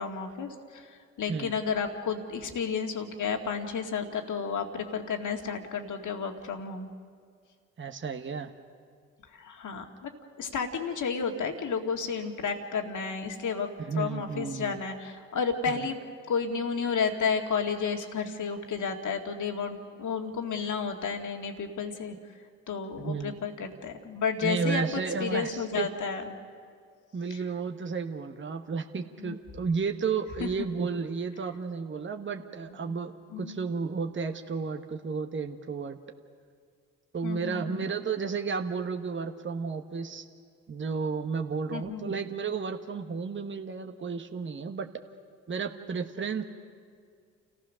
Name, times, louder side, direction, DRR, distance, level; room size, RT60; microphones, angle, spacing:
voice 1, 0.0-6.9 9.3-10.1 10.4-13.7 14.0-16.0 16.3-22.2 22.7-24.8 25.2-26.3 27.3-27.4 29.2-29.4 30.4-30.7 32.8-33.0 33.3-33.6 37.2-37.9 41.7-42.1, left 5 dB, 60° left, 4 dB, 2.1 m, -32 dB
voice 2, 7.8-8.5 13.8-14.8 15.7-15.9 23.0-23.4 24.4-25.9 27.1-36.0 37.1-40.3 40.7-44.9 45.5-46.4, right 5 dB, 35° right, 5 dB, 1.3 m, -32 dB
29.0 x 15.5 x 6.4 m, 2.1 s
hypercardioid pair, 50°, 34 cm